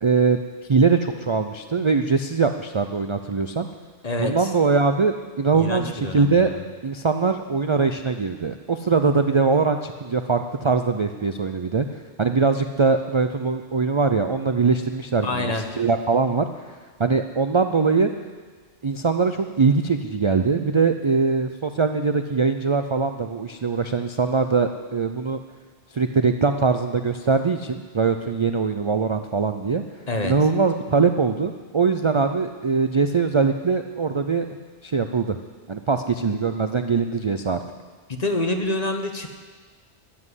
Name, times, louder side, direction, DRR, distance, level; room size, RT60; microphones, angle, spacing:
voice 1, 0.0-0.4 0.7-3.7 4.2-6.5 6.8-16.7 17.0-18.1 18.8-25.4 25.9-29.8 30.2-34.5 34.8-35.4 35.7-37.6, right 4 dB, 40° right, 7 dB, 0.4 m, -22 dB
voice 2, 4.0-4.5 5.5-6.6 15.2-15.6 30.1-30.3 38.1-39.3, left 2 dB, 35° left, 5 dB, 1.2 m, -26 dB
13.0 x 7.6 x 9.9 m, 1.4 s
omnidirectional pair, 1.2 m